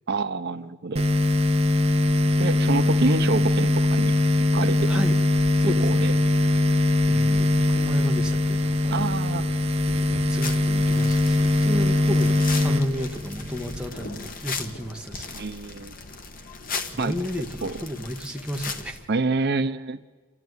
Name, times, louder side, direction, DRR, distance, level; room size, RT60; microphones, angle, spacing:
voice 1, 0.1-1.0 2.4-4.1 4.4-5.0 5.6-6.1 8.9-9.5 15.3-15.9 17.0-17.1 17.6-17.8 19.1-20.0, right 3 dB, 55° right, 11 dB, 0.6 m, -27 dB
sound 1, 1.0-13.9, left 2 dB, 30° right, 1.2 m, -22 dB
voice 2, 4.9-5.2 5.6-6.2 7.1-9.0 10.1-15.4 16.9-19.0, equal, 5° right, 2 dB, 1.5 m, -32 dB
sound 2, 8.1-16.3, left 1 dB, 80° left, 2.4 m, -44 dB
sound 3, 10.4-19.0, left 4 dB, 45° left, 1.5 m, -37 dB
28.5 x 12.5 x 9.6 m, 1.4 s
head